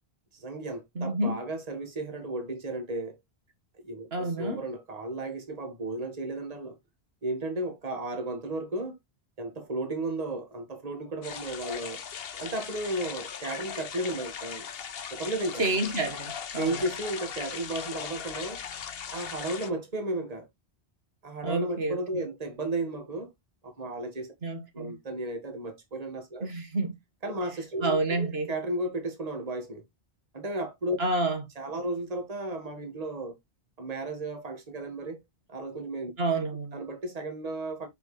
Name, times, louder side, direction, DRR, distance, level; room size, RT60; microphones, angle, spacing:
voice 1, 0.3-3.2 3.8-6.8 7.2-9.0 9.4-12.0 12.4-14.7 15.1-15.7 16.6-18.6 19.1-20.5 21.2-23.3 23.6-24.3 24.7-26.5 27.2-29.8 30.3-31.0 31.6-33.4 33.8-35.2 35.5-36.1 36.7-37.9, right 2 dB, 35° right, 1.7 m, -34 dB
voice 2, 1.0-1.4 4.1-4.6 15.6-16.8 21.4-22.2 24.4-24.9 26.4-26.9 27.8-28.5 31.0-31.4 36.2-36.8, right 2 dB, 70° right, 1.9 m, -29 dB
sound 1, 11.2-19.7, left 7 dB, 65° left, 1.0 m, -38 dB
7.4 x 5.3 x 3.1 m
omnidirectional pair, 1.1 m